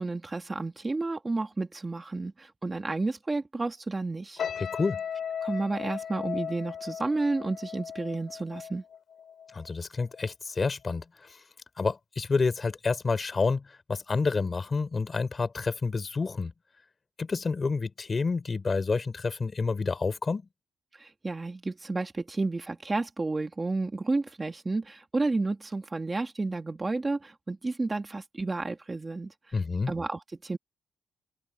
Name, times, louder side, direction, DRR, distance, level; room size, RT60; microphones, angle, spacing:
voice 1, 0.0-4.4 5.4-8.8 20.9-29.3 29.9-30.6, right 3 dB, 20° right, 1.9 m, -31 dB
sound 1, 4.4-9.7 10.0-10.3, left 8 dB, 60° left, 2.7 m, -37 dB
voice 2, 4.6-5.0 9.5-11.4 11.8-16.5 17.2-20.5 29.5-29.9, left 4 dB, 30° left, 4.0 m, -29 dB
open air
wide cardioid pair, 140°, 0 cm